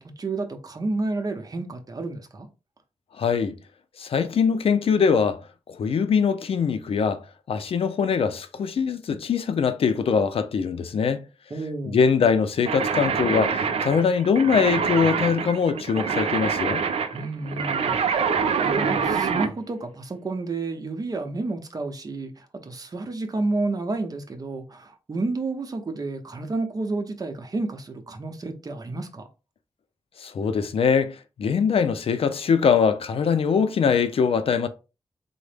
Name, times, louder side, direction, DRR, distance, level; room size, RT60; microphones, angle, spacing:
voice 1, 0.0-2.5 11.5-12.0 17.1-17.9 18.2-29.3, right 2 dB, 35° right, 0.7 m, -30 dB
voice 2, 3.2-3.6 4.0-5.4 5.7-7.2 7.5-11.2 11.8-16.8 30.2-34.7, left 6 dB, 70° left, 0.4 m, -22 dB
sound 1, 12.6-19.5, right 6 dB, 85° right, 0.4 m, -25 dB
3.6 x 2.1 x 3.3 m
wide cardioid pair, 95°, 10 cm